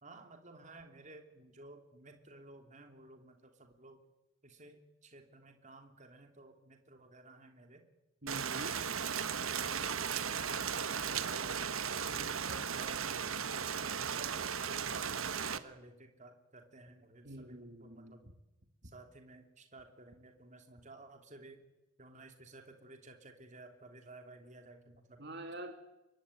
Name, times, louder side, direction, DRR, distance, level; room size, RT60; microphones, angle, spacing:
voice 1, 0.0-4.0 4.4-7.8 9.2-11.9 12.7-18.2 18.8-21.6 22.0-25.2, right 2 dB, 35° right, 5 dB, 3.1 m, -55 dB
voice 2, 8.2-8.8 12.2-13.0 17.2-18.2 25.2-25.8, right 1 dB, 55° right, 5 dB, 2.7 m, -47 dB
Rain, 8.3-15.6, right 7 dB, 85° right, 1.4 m, -36 dB
25.5 x 22.5 x 10.0 m, 1.0 s
head